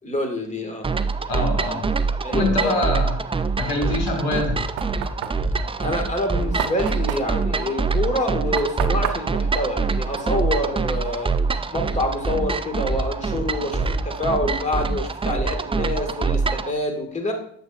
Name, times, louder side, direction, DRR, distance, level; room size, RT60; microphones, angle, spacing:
voice 1, 0.0-0.9 2.2-2.8 5.8-11.3 11.7-17.3, left 1 dB, 20° left, 3 dB, 1.8 m, -27 dB
sound 1, 0.8-16.7, right 4 dB, 15° right, 0.4 m, -25 dB
voice 2, 1.3-1.8 2.3-3.2 3.6-4.6, left 2 dB, 65° left, 1 dB, 1.9 m, -24 dB
Knock, 4.2-10.7, right 9 dB, 75° right, 0.7 m, -33 dB
7.8 x 6.9 x 2.4 m, 0.65 s
hypercardioid pair, 50°, 38 cm